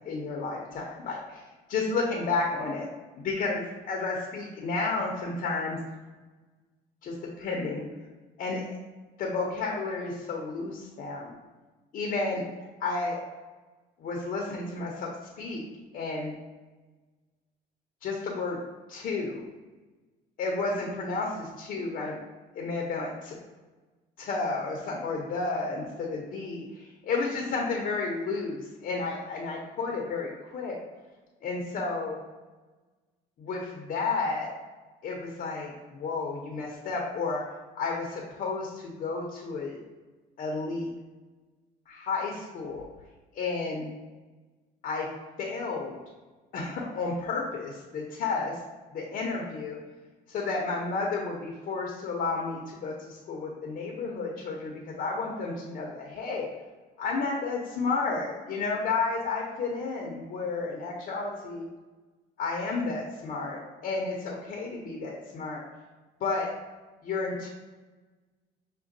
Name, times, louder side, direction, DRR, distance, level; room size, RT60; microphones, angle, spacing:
voice 1, 0.1-1.4 1.7-2.9 3.2-5.8 7.0-7.9 8.4-8.7 9.2-11.3 11.9-12.4 12.8-13.2 14.0-15.1 15.4-15.7 15.9-16.3 18.0-18.6 18.9-19.5 20.4-22.2 22.5-23.3 24.2-30.8 31.4-32.2 33.4-34.5 35.0-37.4 37.7-39.8 40.4-40.9 41.9-42.9 43.3-43.9 44.8-45.1 45.4-46.0 46.5-48.6 48.9-49.8 50.3-56.5 57.0-61.7 62.4-65.6 66.2-66.5 67.0-67.5, left 3 dB, 55° left, -1 dB, 0.7 m, -31 dB
5.8 x 2.2 x 2.6 m, 1.3 s
cardioid pair, 110°, 17 cm